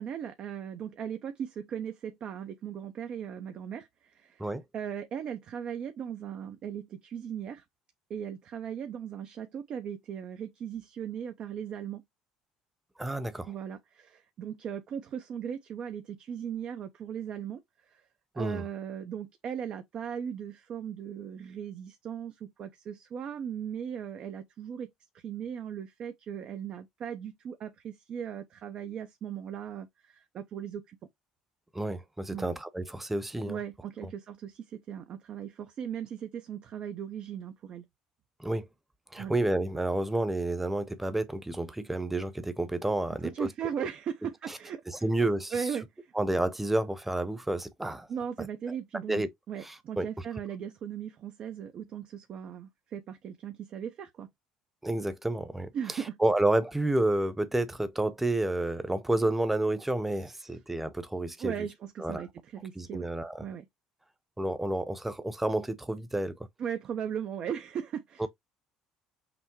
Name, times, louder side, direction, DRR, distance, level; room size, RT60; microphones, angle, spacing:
voice 1, 0.0-4.5 4.7-7.6 8.1-12.0 13.5-18.0 18.3-31.0 32.3-32.5 33.5-37.8 39.2-39.4 43.2-45.0 45.5-46.1 48.1-54.3 55.7-56.2 61.4-63.1 63.4-63.7 66.6-68.3, right 8 dB, 55° right, 0.6 m, -38 dB
voice 2, 13.0-13.5 18.4-18.6 31.7-33.6 34.0-34.1 38.4-38.7 39.1-43.5 44.5-44.6 44.9-45.5 46.1-48.1 48.4-48.5 49.1-49.3 49.6-50.1 54.8-61.5 62.0-62.2 62.8-63.4 64.4-66.4 68.2-68.3, right 1 dB, 10° right, 0.9 m, -30 dB
5.9 x 2.2 x 3.0 m
hypercardioid pair, 70°, 2 cm